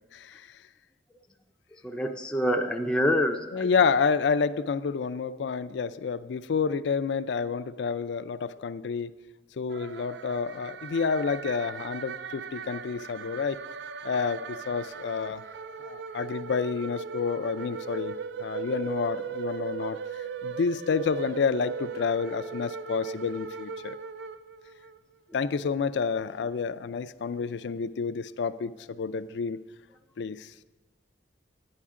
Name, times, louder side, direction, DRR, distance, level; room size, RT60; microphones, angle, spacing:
voice 1, 0.1-0.6 3.5-9.2 9.5-13.6 14.0-15.4 15.8-20.0 20.4-24.0 25.3-29.6 30.2-30.5, left 5 dB, 75° left, 13 dB, 0.4 m, -29 dB
voice 2, 1.7-3.7, equal, 5° left, 2 dB, 0.4 m, -27 dB
sound 1, 9.7-25.0, right 5 dB, 70° right, 0.4 m, -38 dB
11.0 x 9.8 x 3.7 m, 1.3 s
head